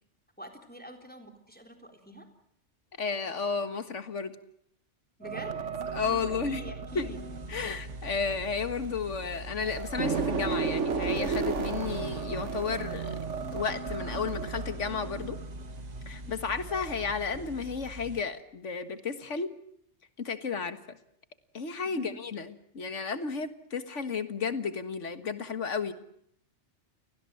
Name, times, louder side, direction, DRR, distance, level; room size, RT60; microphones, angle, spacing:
voice 1, 0.4-2.3 5.2-5.8 6.2-7.2 7.5-7.7 16.2-16.5 21.8-22.2, equal, 10° left, 5 dB, 3.6 m, -47 dB
voice 2, 3.0-4.4 5.9-6.6 7.0-7.1 7.5-13.2 13.5-15.4 16.1-19.5 20.2-21.0 21.5-25.9, left 5 dB, 85° left, 11 dB, 2.0 m, -33 dB
sound 1, 5.2-9.2 9.6-16.3 16.7-16.9, right 5 dB, 85° right, 1.8 m, -34 dB
sound 2, 6.9-18.2, equal, 35° right, 1.5 m, -43 dB
29.5 x 19.0 x 7.7 m, 0.70 s
omnidirectional pair, 1.2 m